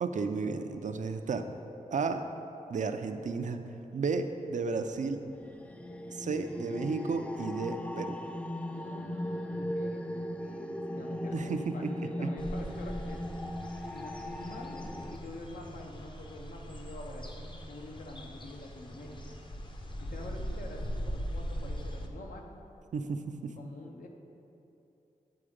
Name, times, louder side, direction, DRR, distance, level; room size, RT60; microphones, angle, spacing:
voice 1, 0.0-1.5 1.9-2.3 2.7-3.6 3.9-5.2 6.1-8.2 11.3-12.3 22.9-23.5, right 4 dB, 60° right, 7 dB, 0.4 m, -33 dB
sound 1, 5.0-15.2, left 1 dB, 10° left, 0.3 m, -38 dB
voice 2, 8.7-13.3 13.9-19.4 20.0-22.4 23.4-24.1, left 2 dB, 70° left, 1 dB, 0.8 m, -46 dB
sound 2, 12.4-22.1, equal, 35° left, 0.7 m, -40 dB
8.7 x 3.9 x 5.0 m, 2.9 s
cardioid pair, 75°, 14 cm